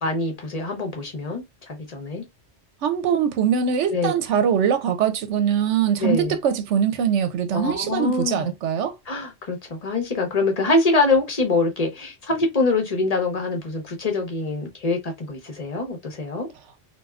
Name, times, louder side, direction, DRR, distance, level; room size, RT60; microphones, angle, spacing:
voice 1, 0.0-1.4 1.9-2.2 3.9-4.1 6.0-6.3 7.5-8.5 9.1-16.5, left 3 dB, 35° left, 0.8 m, -24 dB
voice 2, 2.8-9.0, right 8 dB, 75° right, 0.9 m, -22 dB
3.3 x 2.4 x 2.3 m
omnidirectional pair, 1.3 m